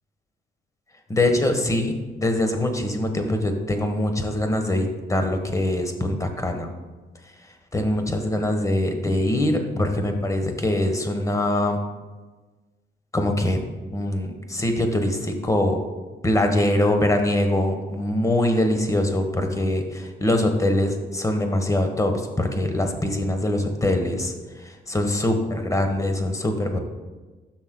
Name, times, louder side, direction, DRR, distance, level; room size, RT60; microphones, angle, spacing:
voice 1, 1.1-1.9 2.2-6.7 7.7-11.8 13.1-13.6 13.9-15.8 16.2-24.3 24.6-26.8, left 1 dB, 15° left, 5 dB, 1.1 m, -23 dB
12.5 x 6.2 x 2.2 m, 1.3 s
cardioid pair, 90°, 20 cm